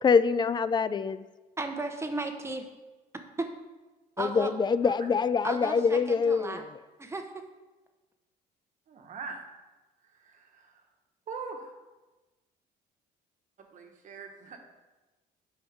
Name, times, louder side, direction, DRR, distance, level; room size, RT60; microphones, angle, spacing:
voice 1, 0.0-1.2 4.2-6.8, left 5 dB, 25° left, 14 dB, 0.3 m, -25 dB
voice 2, 1.6-2.7 3.4-3.5 4.2-4.5 5.4-6.6 7.0-7.4, right 2 dB, 15° right, 5 dB, 0.9 m, -34 dB
voice 3, 8.9-9.4 10.0-10.9 11.3-11.7 13.6-14.6, right 4 dB, 50° right, 3 dB, 1.3 m, -42 dB
10.5 x 5.4 x 3.5 m, 1.2 s
cardioid pair, 110°, 17 cm